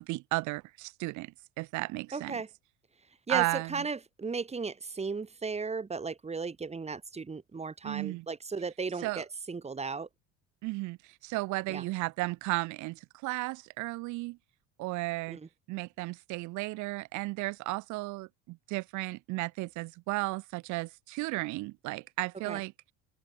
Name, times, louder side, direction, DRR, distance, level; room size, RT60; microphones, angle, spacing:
voice 1, 0.0-2.4 3.3-3.7 7.8-8.2 9.0-9.2 10.6-11.0 11.2-14.4 14.8-15.4 15.7-22.7, right 22 dB, 65° right, 1.0 m, -34 dB
voice 2, 2.1-2.5 3.3-10.1 11.7-11.9 15.3-15.5 22.4-22.6, right 4 dB, 20° right, 5.8 m, -35 dB
open air
supercardioid pair, 115°, 32 cm